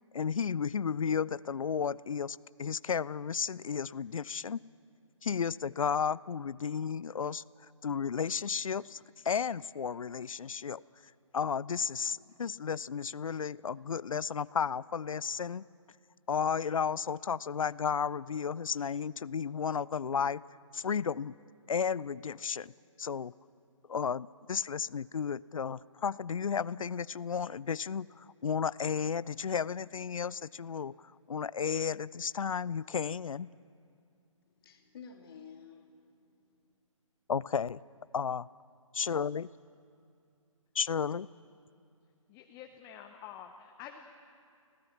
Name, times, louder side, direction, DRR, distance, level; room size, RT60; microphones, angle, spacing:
voice 1, 0.1-4.6 5.2-7.4 7.8-9.0 9.2-10.8 11.3-15.7 16.3-20.4 20.7-21.3 21.7-22.7 23.0-23.3 23.9-30.9 31.3-33.5 37.3-37.8 38.1-38.5 39.0-39.5 40.7-41.3, left 6 dB, 75° left, 22 dB, 0.4 m, -33 dB
voice 2, 34.5-36.8, left 6 dB, 45° left, 2 dB, 2.7 m, -52 dB
voice 3, 42.3-44.1, left 9 dB, 15° left, 4 dB, 0.8 m, -48 dB
25.5 x 16.5 x 7.2 m, 2.4 s
figure-of-eight pair, 140°, 17 cm